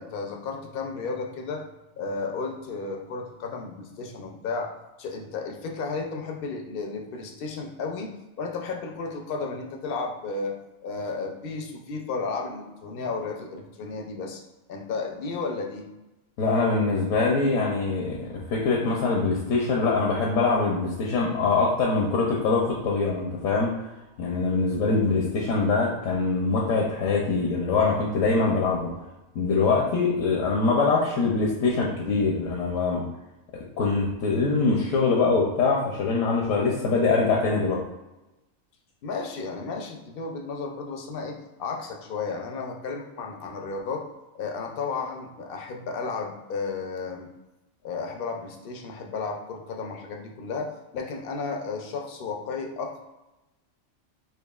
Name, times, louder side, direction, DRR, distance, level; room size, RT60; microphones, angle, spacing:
voice 1, 0.0-1.6 2.0-4.7 5.0-10.6 10.8-14.4 14.7-15.9 39.0-44.0 44.3-47.3 47.8-53.0, left 4 dB, 60° left, 2 dB, 0.6 m, -33 dB
voice 2, 16.4-23.7 24.2-28.9 29.3-33.0 33.5-37.8, left 4 dB, 75° left, -1 dB, 1.0 m, -23 dB
4.6 x 2.7 x 2.3 m, 1.0 s
omnidirectional pair, 1.4 m